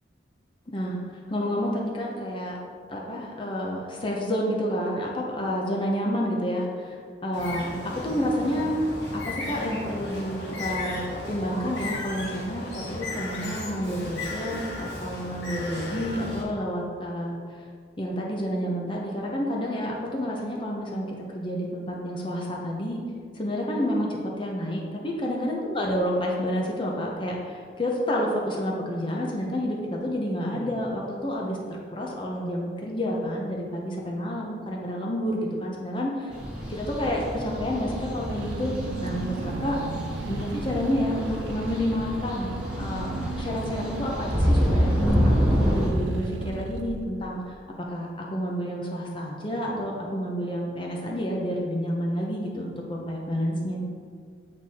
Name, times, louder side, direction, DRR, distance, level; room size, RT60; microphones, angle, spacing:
voice 1, 0.7-1.0 1.3-2.6 2.9-8.7 9.1-17.4 18.0-23.0 23.3-31.6 31.9-36.3 36.7-38.7 39.0-39.8 40.3-42.5 42.8-44.9 45.2-47.5 47.9-53.8, equal, 25° left, -2 dB, 0.7 m, -29 dB
Bird, 7.3-16.4, left 1 dB, 75° left, 1.7 m, -35 dB
sound 1, 36.3-45.9, equal, 5° right, 1.1 m, -27 dB
Car / Engine, 38.3-47.5, right 4 dB, 75° right, 0.3 m, -36 dB
8.2 x 4.2 x 3.6 m, 2.1 s
head